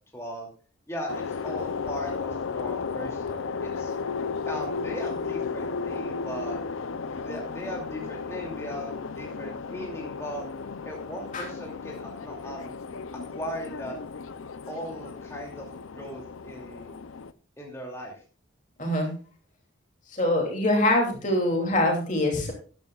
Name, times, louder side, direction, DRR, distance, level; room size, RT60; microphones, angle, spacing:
voice 1, 0.1-0.5 0.9-3.9 4.5-6.6 7.1-10.5 10.9-12.7 13.1-14.0 14.7-15.7 15.9-16.9 17.6-18.2, equal, 15° left, -1 dB, 2.7 m, -38 dB
sound 1, 1.1-17.3, left 5 dB, 90° left, 0.6 m, -34 dB
voice 2, 18.8-19.1 20.1-22.5, left 1 dB, 40° left, 1 dB, 2.8 m, -24 dB
13.5 x 11.5 x 2.4 m, 0.39 s
head